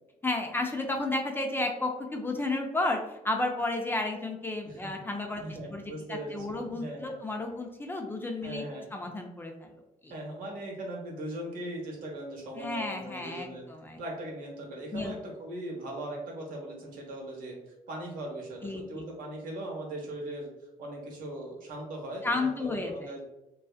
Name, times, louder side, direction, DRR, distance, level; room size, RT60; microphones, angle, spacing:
voice 1, 0.2-5.4 5.7-5.8 6.1-8.6 8.9-9.7 10.0-10.1 12.6-14.0 14.9-15.1 18.6-19.0 22.2-23.2, left 2 dB, 15° left, 2 dB, 0.4 m, -32 dB
voice 2, 4.6-5.0 5.4-7.2 8.4-8.9 10.1-13.7 14.0-20.5 20.8-23.2, right 1 dB, 75° right, -1 dB, 0.9 m, -39 dB
2.5 x 2.3 x 2.3 m, 0.96 s
cardioid pair, 105°, 14 cm